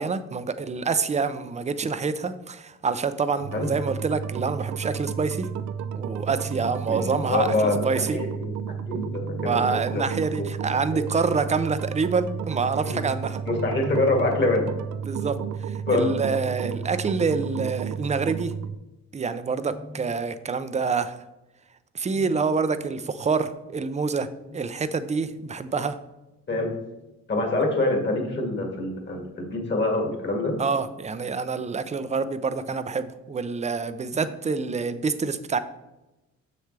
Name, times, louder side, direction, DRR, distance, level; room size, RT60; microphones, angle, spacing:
voice 1, 0.0-5.5 5.9-8.2 9.4-13.4 15.1-18.5 19.1-21.2 21.9-24.3 24.5-26.0 30.6-35.6, right 4 dB, 25° right, 12 dB, 0.5 m, -27 dB
sound 1, 3.4-18.8, right 7 dB, 70° right, 0.5 m, -32 dB
voice 2, 6.9-7.8 8.1-9.6 9.9-10.4 10.9-11.1 12.8-13.0 13.5-14.9 15.9-16.2 19.6-19.7 26.5-26.7 27.3-30.6 34.1-34.2, left 2 dB, 35° left, 1 dB, 2.1 m, -26 dB
7.0 x 6.7 x 3.3 m, 0.99 s
cardioid pair, 90°, 30 cm